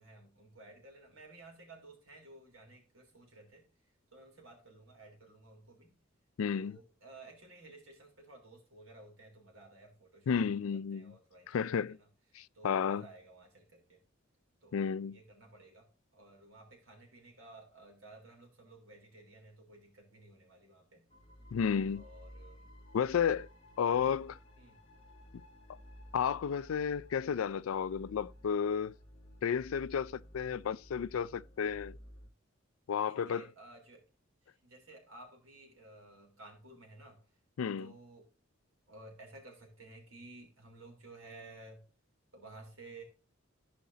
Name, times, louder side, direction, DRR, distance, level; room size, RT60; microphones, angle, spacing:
voice 1, 0.0-3.6 4.1-5.9 6.5-10.3 10.9-11.7 12.0-12.1 12.5-14.0 14.6-15.8 16.1-21.1 22.0-22.7 23.8-24.2 24.6-24.8 33.1-34.0 34.4-37.2 37.8-38.3 38.9-41.8 42.3-43.0, right 2 dB, 85° right, 3.8 m, -55 dB
voice 2, 6.4-6.8 10.3-11.1 11.5-12.0 12.3-13.1 14.7-15.2 21.5-22.0 22.9-23.5 23.8-24.3 26.1-29.0 29.4-32.0 32.9-33.5 37.6-37.9, left 7 dB, 85° left, 0.4 m, -32 dB
sound 1, 21.1-32.3, equal, 30° left, 2.2 m, -54 dB
15.0 x 5.2 x 2.8 m
head